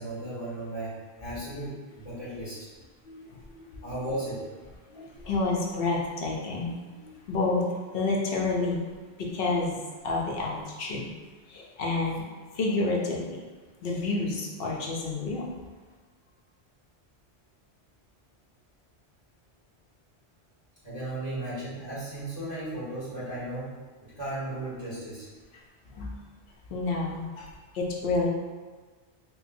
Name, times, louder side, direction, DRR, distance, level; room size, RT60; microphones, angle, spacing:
voice 1, 0.0-2.7 3.8-4.4 20.8-23.7 24.0-25.3, right 1 dB, 35° left, -12 dB, 1.4 m, -35 dB
voice 2, 3.1-3.8 4.9-8.8 9.2-9.8 10.0-11.1 11.5-12.2 12.5-13.4 13.8-15.5 25.9-26.2 26.7-27.5 27.7-28.3, left 3 dB, 65° left, -2 dB, 0.8 m, -29 dB
4.5 x 2.1 x 2.5 m, 1.4 s
omnidirectional pair, 1.1 m